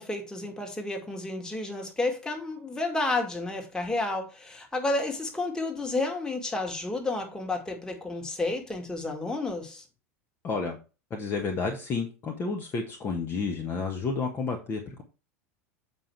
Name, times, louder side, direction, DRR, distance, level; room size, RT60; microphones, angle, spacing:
voice 1, 0.0-9.8, left 2 dB, 10° left, 2.1 m, -31 dB
voice 2, 10.4-10.8 11.1-15.0, left 4 dB, 30° left, 1.4 m, -31 dB
7.5 x 5.1 x 4.7 m
figure-of-eight pair, 80°, 8 cm